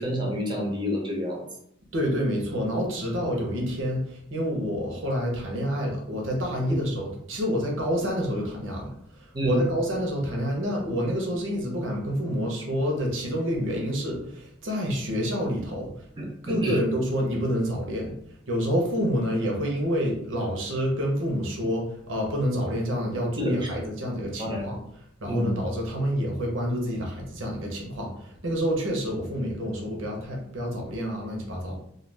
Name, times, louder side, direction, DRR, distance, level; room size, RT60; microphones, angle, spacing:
voice 1, 0.0-1.4 6.7-6.8 9.3-9.6 16.2-16.8 23.4-23.5 24.4-24.7 25.3-25.5, equal, 25° right, -1 dB, 0.6 m, -28 dB
voice 2, 1.9-8.9 9.4-15.9 16.4-18.1 18.5-24.8 25.2-31.7, equal, 80° right, 0 dB, 0.8 m, -28 dB
2.4 x 2.3 x 3.3 m, 0.74 s
head